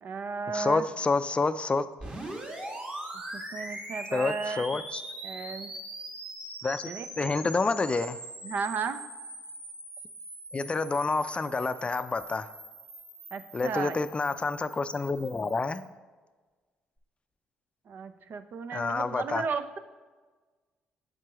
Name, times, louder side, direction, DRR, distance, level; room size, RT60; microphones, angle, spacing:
voice 1, 0.0-0.9 3.3-4.8 5.2-5.7 6.8-7.1 8.4-9.0 13.3-14.0 17.9-19.8, right 5 dB, 55° right, 11 dB, 0.6 m, -34 dB
voice 2, 0.5-1.9 4.1-5.0 6.6-8.2 10.5-12.5 13.5-15.8 18.7-19.4, left 3 dB, 30° left, 12 dB, 0.4 m, -28 dB
sound 1, 2.0-15.8, right 1 dB, 35° right, 2.0 m, -42 dB
7.7 x 7.4 x 3.0 m, 1.3 s
supercardioid pair, 60°, 4 cm